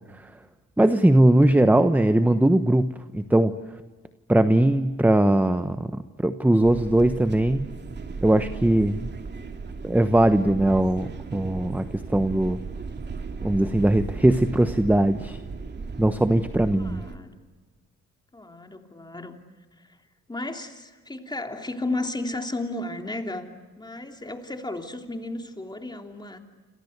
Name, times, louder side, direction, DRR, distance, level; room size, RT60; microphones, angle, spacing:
voice 1, 0.8-2.9 3.1-3.5 4.3-7.7 8.2-9.1 9.8-11.8 12.1-12.6 13.4-15.4 16.0-17.0, right 1 dB, 5° right, 10 dB, 1.0 m, -20 dB
sound 1, 6.6-17.2, right 4 dB, 35° right, 2.6 m, -36 dB
voice 2, 16.7-17.4 18.3-19.4 19.8-20.0 20.3-26.4, left 2 dB, 15° left, 4 dB, 3.3 m, -34 dB
29.5 x 27.0 x 6.7 m, 1.4 s
cardioid pair, 90°, 30 cm